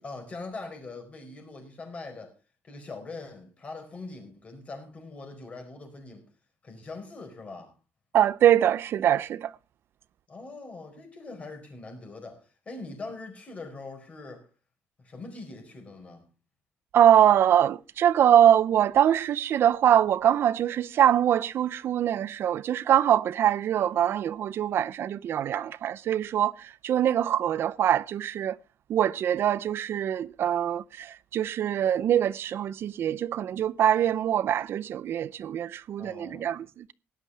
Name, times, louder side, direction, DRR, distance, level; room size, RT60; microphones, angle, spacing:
voice 1, 0.0-2.3 2.6-6.3 6.6-7.7 10.3-14.5 15.0-16.2 36.0-36.6, left 3 dB, 30° left, 4.6 m, -42 dB
voice 2, 8.1-9.5 16.9-28.6 28.9-36.9, right 10 dB, 55° right, 0.5 m, -23 dB
17.5 x 11.0 x 3.3 m
cardioid pair, 155°, 5 cm